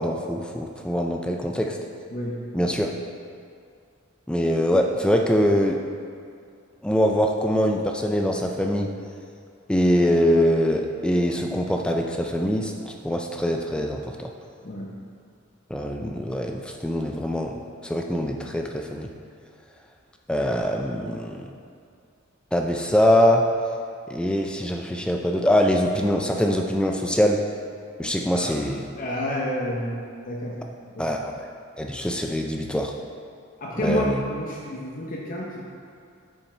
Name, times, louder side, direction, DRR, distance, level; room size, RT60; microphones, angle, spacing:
voice 1, 0.0-1.8 2.5-2.9 4.3-5.8 6.8-8.9 9.7-14.3 15.7-17.6 17.8-19.1 20.3-21.5 22.5-23.4 24.1-27.4 28.0-28.8 31.0-31.5 31.8-32.9 33.8-34.2, equal, 5° left, 2 dB, 0.3 m, -23 dB
voice 2, 2.1-2.7 14.6-14.9 28.3-28.5 29.0-30.0 30.3-30.6 30.9-31.1 33.6-35.5, left 1 dB, 40° left, -4 dB, 0.8 m, -29 dB
7.1 x 5.4 x 4.4 m, 2.3 s
head